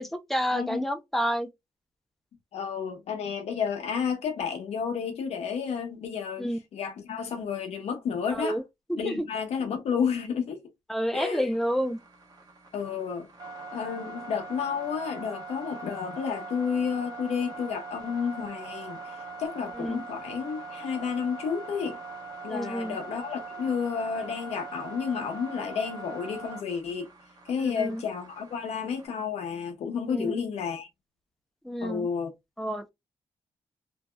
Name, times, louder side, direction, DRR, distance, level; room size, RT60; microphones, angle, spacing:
voice 1, 0.0-1.5 6.4-6.6 8.3-8.6 8.9-9.3 10.9-12.0 19.7-20.0 22.5-23.0 27.6-28.0 30.1-30.4 31.6-32.1 32.6-32.9, equal, ahead, 0.5 m, -29 dB
voice 2, 2.5-6.5 6.7-8.6 8.9-10.6 11.1-11.4 12.7-13.3 13.7-22.0 22.4-27.1 27.5-30.9 31.8-32.3, left 6 dB, 90° left, 0.8 m, -31 dB
sound 1, 11.5-29.1, right 3 dB, 40° right, 1.3 m, -42 dB
2.9 x 2.7 x 2.2 m
cardioid pair, 110°, 11 cm